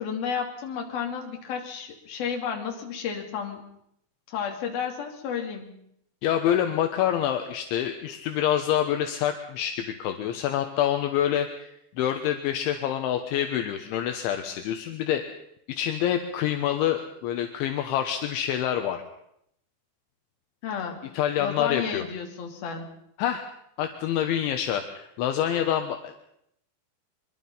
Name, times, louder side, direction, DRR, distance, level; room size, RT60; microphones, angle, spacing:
voice 1, 0.0-3.6 4.3-5.8 20.6-21.0 21.4-22.9, left 7 dB, 55° left, 2 dB, 4.5 m, -32 dB
voice 2, 6.2-15.2 15.7-19.0 21.1-22.1 23.2-23.4 23.8-26.3, left 10 dB, 75° left, 6 dB, 3.5 m, -27 dB
24.0 x 24.0 x 5.7 m, 0.73 s
omnidirectional pair, 5.6 m